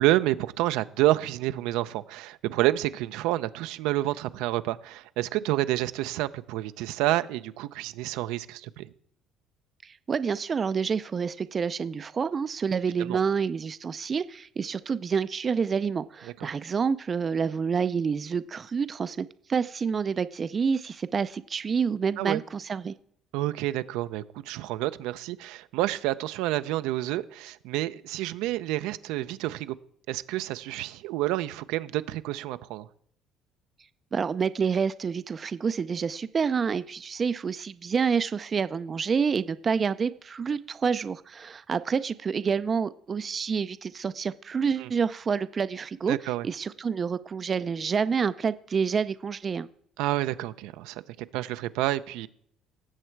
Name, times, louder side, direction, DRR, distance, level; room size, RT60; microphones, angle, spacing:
voice 1, 0.0-8.9 13.0-13.2 22.2-22.4 23.3-29.8 30.1-32.9 44.8-44.9 46.1-46.5 50.0-52.3, right 16 dB, 85° right, 0.5 m, -29 dB
voice 2, 9.8-22.9 34.1-46.2 46.4-49.7, right 6 dB, 30° right, 0.4 m, -28 dB
17.5 x 7.3 x 4.6 m
cardioid pair, 140°, 0 cm